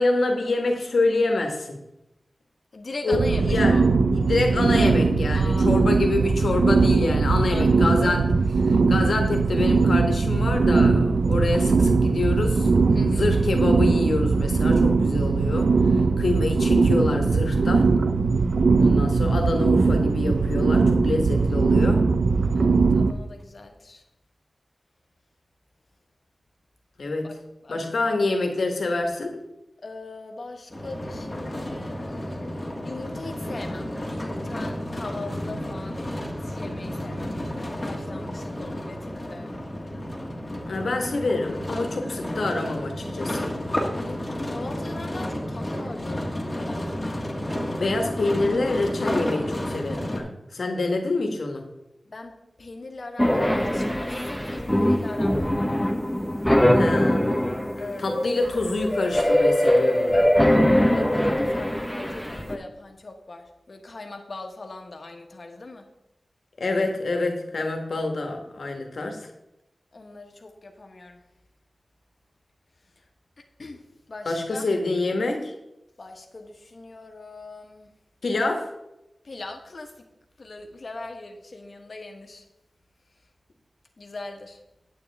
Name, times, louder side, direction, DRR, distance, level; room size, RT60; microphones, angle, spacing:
voice 1, 0.0-1.7 3.0-3.8 4.1-8.2 8.6-12.7 13.0-15.7 16.2-17.9 18.8-22.0 27.0-27.3 27.7-29.4 40.7-43.5 47.8-50.3 50.5-51.6 56.7-57.5 58.0-60.2 66.6-69.3 74.2-75.5 78.2-78.7, left 2 dB, 80° left, 3 dB, 1.5 m, -26 dB
voice 2, 2.7-3.9 5.3-5.8 7.5-8.2 12.9-13.3 22.5-24.0 27.2-27.4 27.6-28.1 29.8-39.5 43.9-47.1 52.1-55.8 57.8-58.1 60.8-65.9 69.9-71.2 73.0-73.1 73.4-73.8 74.1-74.7 76.0-77.9 79.2-79.9 80.4-82.4 84.0-84.6, left 2 dB, 55° left, 4 dB, 1.3 m, -40 dB
sound 1, 3.1-23.1, right 4 dB, 85° right, 0.5 m, -20 dB
sound 2, 30.7-50.2, left 1 dB, 20° left, 1.5 m, -31 dB
sound 3, 53.2-62.6, left 1 dB, 5° left, 0.8 m, -22 dB
9.6 x 8.4 x 3.5 m, 0.89 s
wide cardioid pair, 100°, 0 cm